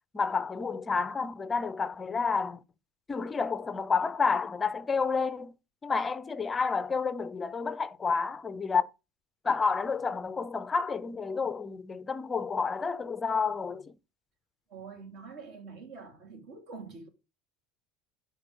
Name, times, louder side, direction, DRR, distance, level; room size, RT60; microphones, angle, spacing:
voice 1, 0.1-2.6 3.1-5.5 5.8-8.9 9.4-13.9, left 5 dB, 15° left, 0.5 m, -30 dB
voice 2, 14.7-17.1, right 5 dB, 50° right, 3.0 m, -45 dB
9.5 x 4.4 x 5.1 m
cardioid pair, 155°, 0 cm